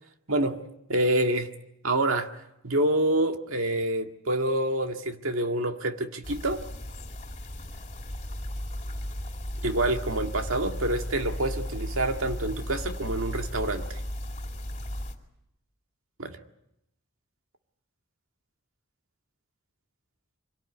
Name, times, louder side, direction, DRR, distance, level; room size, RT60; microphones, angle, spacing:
voice 1, 0.3-0.6 0.9-1.5 1.8-2.3 2.6-6.6 9.6-14.0 16.2-16.4, right 1 dB, 80° right, 5 dB, 1.9 m, -27 dB
sound 1, 6.2-15.2, equal, 30° left, 2.6 m, -35 dB
25.0 x 18.0 x 9.5 m, 0.82 s
head